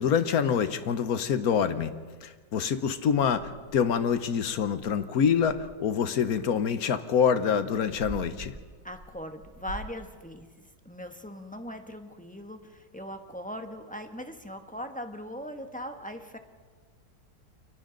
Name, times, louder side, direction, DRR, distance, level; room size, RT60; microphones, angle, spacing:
voice 1, 0.0-1.9 2.2-8.5, left 7 dB, 60° left, 11 dB, 1.3 m, -26 dB
sound 1, 5.4-6.5 7.5-9.9, right 2 dB, 70° right, 5.3 m, -45 dB
voice 2, 8.8-16.4, equal, 5° left, 6 dB, 0.9 m, -40 dB
29.0 x 24.0 x 3.9 m, 1.5 s
omnidirectional pair, 1.9 m